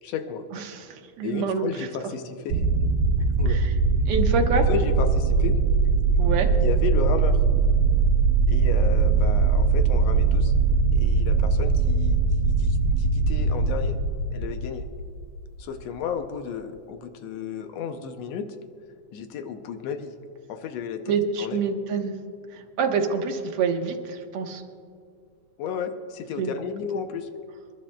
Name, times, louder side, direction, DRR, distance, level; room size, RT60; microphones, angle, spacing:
voice 1, 0.0-0.5 1.2-2.6 3.4-3.6 4.5-5.6 6.6-7.4 8.5-10.5 10.9-14.0 14.3-14.8 15.6-18.5 19.1-20.1 20.5-21.6 25.6-27.3, left 7 dB, 75° left, 7 dB, 1.6 m, -33 dB
voice 2, 0.5-1.7 3.5-3.7 4.1-4.6 6.2-6.5 21.1-22.1 22.5-24.6 26.4-26.5, right 5 dB, 60° right, 3 dB, 1.6 m, -26 dB
sound 1, 2.5-15.5, right 4 dB, 85° right, 2.5 m, -21 dB
27.5 x 11.5 x 2.3 m, 2.3 s
omnidirectional pair, 3.5 m